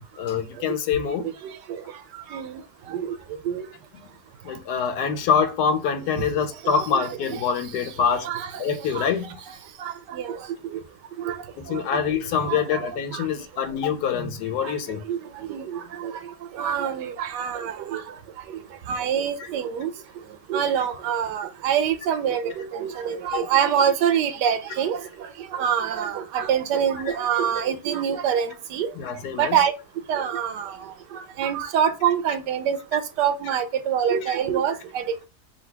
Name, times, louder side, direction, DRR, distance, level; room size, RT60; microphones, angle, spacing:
voice 1, 0.2-1.3 4.4-8.3 8.6-9.3 11.6-15.0 23.3-23.5 27.1-27.2 29.0-29.6 34.3-34.4, left 7 dB, 75° left, 1.2 m, -25 dB
voice 2, 9.8-10.4 11.2-11.4 11.7-11.8 12.5-12.8 13.1-13.2 15.1-15.2 15.5-16.1 16.6-18.0 18.9-19.9 20.5-25.0 25.5-28.9 29.4-29.7 30.1-30.7 31.1-35.0, right 8 dB, 90° right, 1.3 m, -25 dB
4.0 x 2.4 x 4.4 m
omnidirectional pair, 1.8 m